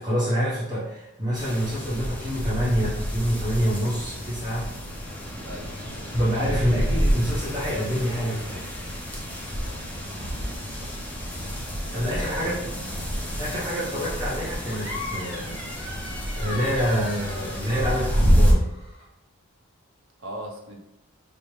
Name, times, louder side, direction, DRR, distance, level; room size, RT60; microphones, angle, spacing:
voice 1, 0.0-4.7 6.1-8.7 11.9-12.6 13.4-15.6 16.4-18.6, equal, 20° right, -9 dB, 0.8 m, -27 dB
sound 1, 1.3-18.5, equal, 5° left, 0.5 m, -28 dB
voice 2, 5.4-5.7 9.6-9.8 11.9-12.7 20.2-20.8, right 1 dB, 60° right, 0 dB, 0.7 m, -38 dB
sound 2, 14.7-19.0, left 2 dB, 50° left, 1.1 m, -39 dB
4.9 x 2.1 x 3.1 m, 0.87 s
head